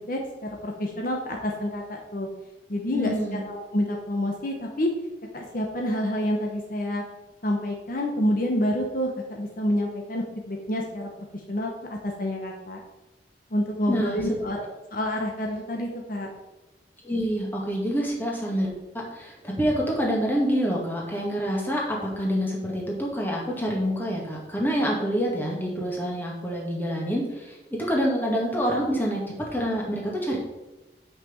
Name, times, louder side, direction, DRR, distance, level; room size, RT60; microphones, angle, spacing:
voice 1, 0.1-2.3 2.7-3.1 3.4-4.9 5.3-7.0 7.4-12.8 13.5-14.6 14.9-16.3, left 1 dB, 50° left, 1 dB, 1.1 m, -28 dB
voice 2, 2.9-3.4 13.9-14.4 17.0-18.7 19.1-29.2 29.5-30.4, equal, 10° left, -2 dB, 2.1 m, -27 dB
6.1 x 6.0 x 7.1 m, 1.0 s
head